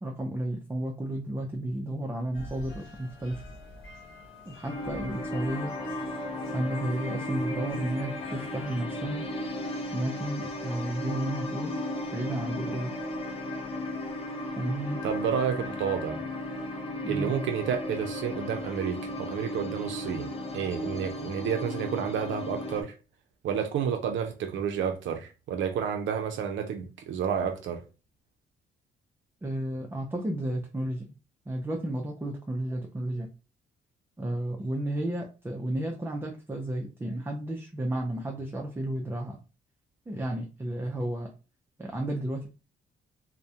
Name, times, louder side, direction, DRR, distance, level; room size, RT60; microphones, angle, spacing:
voice 1, 0.0-3.4 4.5-5.7 6.5-9.3 9.9-11.8 12.1-12.9 14.6-15.0 17.0-17.3 29.4-31.1 31.5-33.3 34.2-39.4 40.1-41.3 41.8-42.5, right 1 dB, 10° right, 0.4 m, -32 dB
sound 1, 2.3-8.8, left 1 dB, 80° left, 0.9 m, -47 dB
sound 2, 4.6-22.8, left 1 dB, 30° left, 0.6 m, -35 dB
voice 2, 15.0-16.2 17.1-20.3 20.5-22.9 23.4-27.8, right 7 dB, 70° right, 0.4 m, -30 dB
2.2 x 2.0 x 2.7 m
cardioid pair, 90°, 20 cm